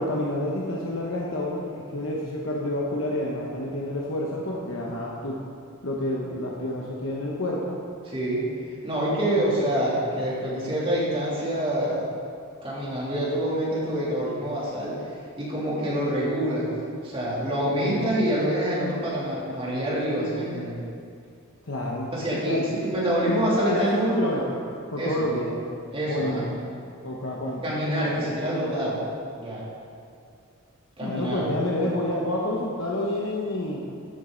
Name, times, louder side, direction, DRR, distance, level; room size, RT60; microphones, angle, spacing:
voice 1, 0.0-5.4 5.8-7.8 17.6-18.2 21.7-22.1 22.5-22.6 23.5-24.6 24.9-25.6 26.1-26.7 27.0-27.6 31.0-33.8, left 1 dB, 65° left, -2 dB, 1.0 m, -29 dB
voice 2, 8.1-8.5 8.8-12.0 12.6-14.9 15.4-16.7 17.0-20.8 22.1-24.2 25.0-25.2 25.9-26.4 27.6-29.0 29.4-29.6 31.0-31.5 31.8-31.9, right 1 dB, 25° right, -7 dB, 2.9 m, -26 dB
13.0 x 7.6 x 3.9 m, 2.4 s
head